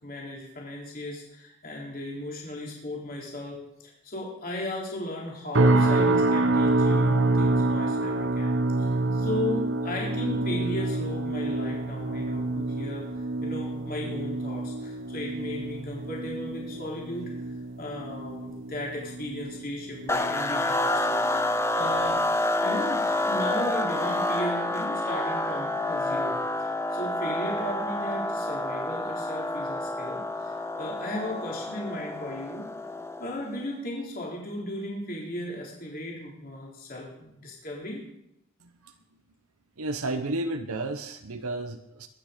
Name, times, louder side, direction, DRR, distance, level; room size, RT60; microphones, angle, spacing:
voice 1, 0.0-13.1 13.4-17.3 17.8-22.2 22.6-26.4 26.6-30.5 30.8-32.7 33.2-38.0, left 1 dB, 40° left, -3 dB, 3.6 m, -36 dB
sound 1, 5.5-20.8 21.1-21.5 22.0-22.2, right 2 dB, 55° right, 1.1 m, -27 dB
sound 2, 20.1-33.5, left 1 dB, 10° left, 0.7 m, -28 dB
voice 2, 38.6-38.9 39.8-42.1, right 2 dB, 75° right, 7 dB, 1.1 m, -32 dB
22.0 x 9.4 x 5.2 m, 0.83 s
head